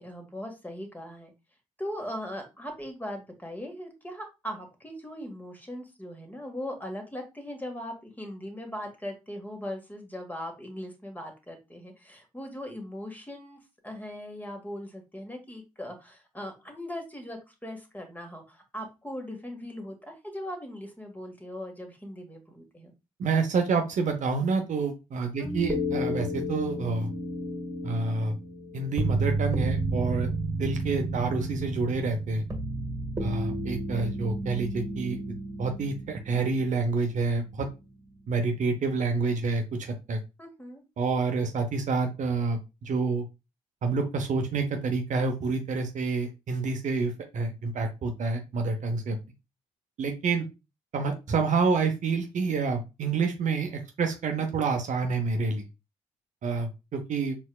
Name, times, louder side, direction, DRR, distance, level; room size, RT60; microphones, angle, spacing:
voice 1, 0.0-1.3 1.8-13.6 13.8-22.9 25.6-25.8 40.4-40.8, equal, 10° left, 3 dB, 1.6 m, -39 dB
voice 2, 23.2-27.1 27.8-28.3 28.7-30.3 30.6-32.4 33.2-35.2 35.6-37.7 38.3-40.2 41.0-43.3 43.8-49.2 50.0-50.5 50.9-55.6 56.4-57.4, right 4 dB, 60° right, 5 dB, 0.8 m, -28 dB
sound 1, 25.4-37.5 37.8-37.9, right 1 dB, 20° right, 1.8 m, -32 dB
4.4 x 3.4 x 2.3 m, 0.26 s
hypercardioid pair, 45°, 15 cm